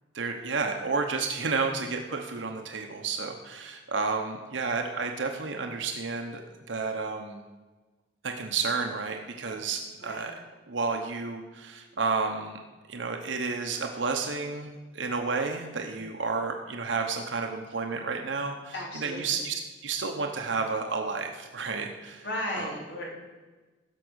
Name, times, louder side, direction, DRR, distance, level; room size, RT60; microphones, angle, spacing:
voice 1, 0.1-6.4 6.7-7.4 8.2-10.3 10.7-12.6 12.9-22.3 22.6-22.7, right 4 dB, 90° right, 3 dB, 1.0 m, -31 dB
voice 2, 18.7-19.4 22.2-23.1, left 1 dB, 70° left, -2 dB, 3.2 m, -35 dB
15.5 x 6.2 x 6.3 m, 1.2 s
head